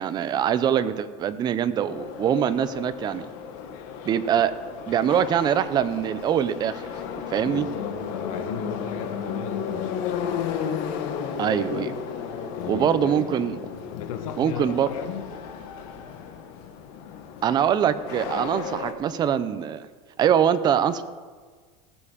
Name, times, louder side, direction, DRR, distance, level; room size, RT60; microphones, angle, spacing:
voice 1, 0.0-3.3 4.1-4.5 4.9-6.7 7.3-7.7 11.4-11.9 12.7-13.6 14.4-14.9 17.4-19.9 20.2-21.0, right 9 dB, 25° right, 13 dB, 0.6 m, -23 dB
Subway metro underground, 1.9-18.9, left 7 dB, 60° left, 1.5 m, -34 dB
voice 2, 7.4-10.6 12.5-15.3, left 8 dB, 80° left, 5 dB, 1.8 m, -35 dB
18.0 x 7.3 x 5.1 m, 1.5 s
supercardioid pair, 160°, 17 cm